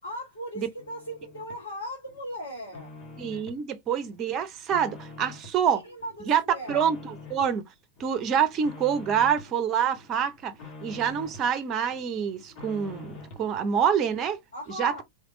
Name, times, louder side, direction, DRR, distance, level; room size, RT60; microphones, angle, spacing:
voice 1, 0.0-2.9 5.7-6.9 14.5-15.0, equal, 75° left, 1.4 m, -38 dB
sound 1, 0.8-1.6 2.1-3.6 4.0-5.6 6.0-7.6 8.0-9.5 9.9-11.5 11.9-13.5, left 3 dB, 35° left, 1.4 m, -46 dB
voice 2, 3.2-5.8 6.3-6.4 6.7-7.6 8.0-10.5 10.8-14.4 14.8-15.0, right 8 dB, 30° right, 0.7 m, -26 dB
3.8 x 3.3 x 2.6 m
figure-of-eight pair, 90°, 0 cm